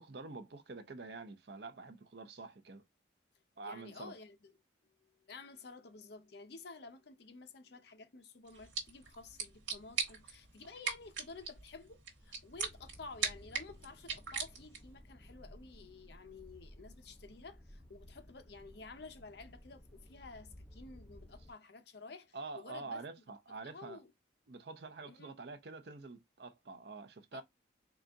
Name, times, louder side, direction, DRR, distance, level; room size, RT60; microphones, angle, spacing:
voice 1, 0.0-2.8 3.6-4.1 22.3-24.0 24.5-27.4, right 3 dB, 55° right, 0.6 m, -47 dB
voice 2, 3.6-4.5 5.2-23.0 23.5-24.1 25.0-25.3 27.3-27.4, left 4 dB, 60° left, 0.6 m, -52 dB
sound 1, 8.5-15.0, right 6 dB, 80° right, 1.3 m, -41 dB
sound 2, 12.5-21.5, equal, 5° left, 0.4 m, -57 dB
3.9 x 2.4 x 3.6 m
head